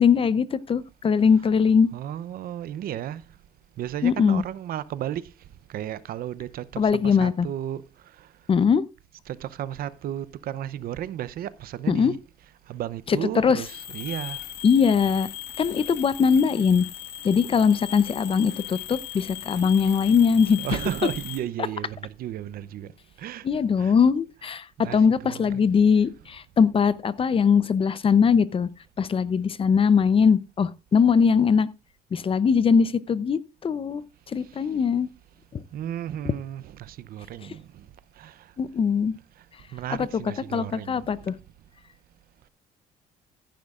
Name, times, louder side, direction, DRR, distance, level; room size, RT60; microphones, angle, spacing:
voice 1, 0.0-1.9 4.0-4.4 6.8-7.5 8.5-8.8 11.9-12.1 13.1-13.6 14.6-15.3 15.6-16.9 17.2-20.8 23.4-28.7 29.0-31.7 32.1-34.0 34.3-35.1 35.5-35.6 38.6-39.1 39.9-40.2 40.5-41.3, left 6 dB, 35° left, 0.6 m, -21 dB
voice 2, 1.9-3.2 3.8-5.3 5.7-7.8 9.3-12.2 12.7-14.4 20.6-22.9 23.2-23.5 23.8-23.9 24.8-25.6 35.7-37.7 38.2-38.4 39.7-41.0, right 11 dB, 60° right, 0.7 m, -33 dB
sound 1, 13.3-21.4, left 12 dB, 80° left, 1.9 m, -38 dB
15.0 x 10.5 x 2.4 m
cardioid pair, 110°, 17 cm